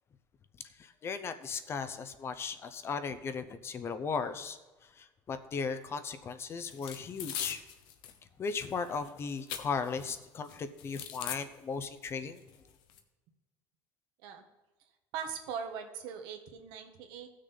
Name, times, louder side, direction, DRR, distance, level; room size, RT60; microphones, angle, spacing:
voice 1, 0.8-7.6 8.4-12.4, left 5 dB, 30° left, 10 dB, 0.7 m, -37 dB
sound 1, 6.7-8.2 8.5-10.1 10.4-11.4 12.0-12.1 12.4-13.0, left 9 dB, 70° left, 1.1 m, -41 dB
voice 2, 15.1-17.3, right 7 dB, 75° right, 5 dB, 1.4 m, -40 dB
15.0 x 6.5 x 4.0 m, 1.2 s
cardioid pair, 135°, 8 cm